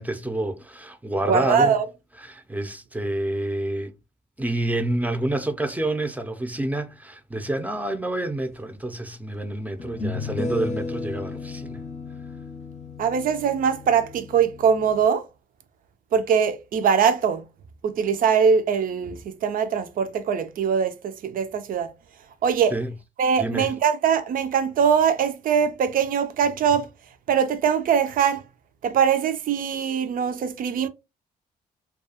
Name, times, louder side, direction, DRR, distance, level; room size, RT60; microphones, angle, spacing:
voice 1, 0.0-1.7 2.2-3.9 4.4-11.8 22.7-22.9 23.4-23.7, right 1 dB, 10° right, 0.5 m, -28 dB
voice 2, 1.3-1.9 13.0-15.2 16.1-17.5 17.8-21.9 22.4-22.8 23.2-26.9 27.3-28.4 28.8-30.9, right 7 dB, 60° right, 0.5 m, -22 dB
sound 1, 8.7-8.8 9.8-15.1, left 3 dB, 45° left, 0.6 m, -34 dB
2.3 x 2.3 x 2.7 m
supercardioid pair, 65°, 16 cm